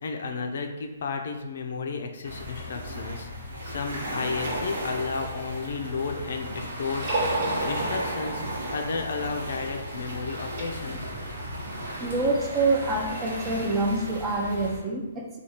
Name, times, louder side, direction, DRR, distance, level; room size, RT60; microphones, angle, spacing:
voice 1, 0.0-7.0 7.6-8.4 8.7-11.1, left 4 dB, 65° left, 4 dB, 0.4 m, -33 dB
sound 1, 2.2-14.8, equal, 80° right, 1.0 m, -35 dB
sound 2, 4.4-6.5 6.9-10.6, right 2 dB, 45° right, 1.1 m, -34 dB
voice 2, 12.0-15.4, right 2 dB, 15° right, -1 dB, 0.4 m, -26 dB
3.3 x 2.3 x 2.8 m, 1.1 s
hypercardioid pair, 150°, 0 cm